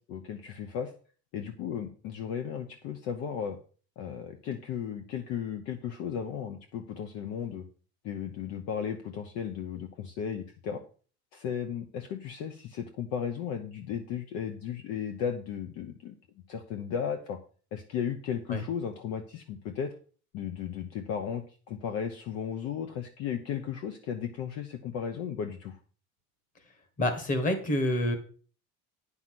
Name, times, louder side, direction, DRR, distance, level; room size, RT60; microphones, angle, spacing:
voice 1, 0.1-0.9 1.3-3.6 4.0-7.6 8.0-10.8 11.3-16.1 16.5-17.4 17.7-19.9 20.3-25.8, left 8 dB, 50° left, 7 dB, 0.9 m, -35 dB
voice 2, 27.0-28.1, left 1 dB, 25° left, 9 dB, 1.6 m, -27 dB
9.5 x 5.9 x 6.0 m, 0.40 s
cardioid pair, 180°, 32 cm